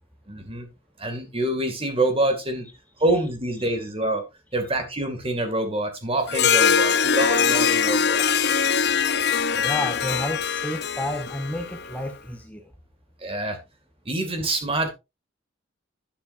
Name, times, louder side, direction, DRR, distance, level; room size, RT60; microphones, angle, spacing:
voice 1, 0.3-0.7 1.0-2.7 3.0-4.2 4.5-8.2 13.2-13.6 14.1-14.9, right 1 dB, 30° right, 2.3 m, -26 dB
Harp, 6.3-12.0, left 6 dB, 55° left, 0.7 m, -22 dB
voice 2, 9.5-12.6, left 1 dB, 10° left, 0.9 m, -31 dB
11.5 x 10.0 x 2.6 m
head